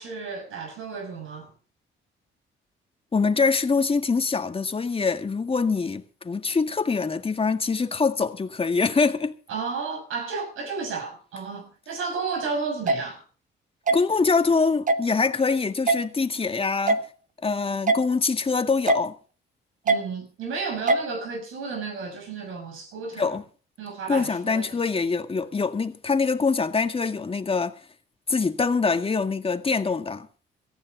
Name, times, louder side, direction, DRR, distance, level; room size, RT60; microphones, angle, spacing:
voice 1, 0.0-1.5 9.5-13.2 19.8-23.3 23.8-24.7, right 4 dB, 80° right, 6.5 m, -32 dB
voice 2, 3.1-9.3 13.9-17.0 17.4-19.2 23.2-23.4 24.1-27.8 28.3-30.3, left 4 dB, 25° left, 2.0 m, -24 dB
sound 1, 12.9-13.0 13.9-14.0 14.9-15.0 15.9-16.0 16.9-17.0 17.9-18.0 18.9-19.0 19.9-20.0 20.9-21.0, right 3 dB, 40° right, 1.6 m, -20 dB
18.0 x 14.5 x 4.0 m
cardioid pair, 85°, 21 cm